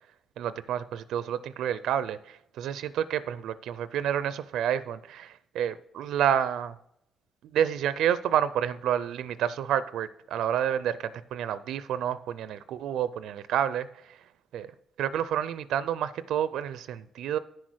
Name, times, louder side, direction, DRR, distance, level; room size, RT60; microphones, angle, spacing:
voice 1, 0.4-6.7 7.4-14.2 14.5-14.7 15.0-17.4, right 9 dB, 80° right, 15 dB, 0.4 m, -29 dB
9.9 x 6.3 x 6.2 m, 0.75 s
cardioid pair, 90°, 0 cm